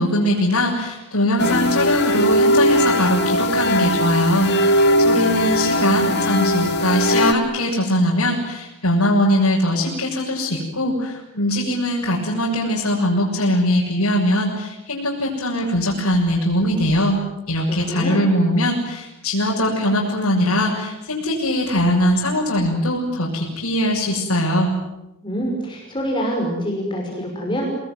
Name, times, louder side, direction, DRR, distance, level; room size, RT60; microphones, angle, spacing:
voice 1, 0.0-24.7, left 1 dB, 90° left, -4 dB, 6.9 m, -21 dB
sound 1, 1.4-7.3, equal, 50° left, 2.0 m, -19 dB
voice 2, 17.7-18.2 25.2-27.7, equal, 20° left, -1 dB, 5.8 m, -25 dB
28.0 x 20.5 x 9.7 m, 0.96 s
head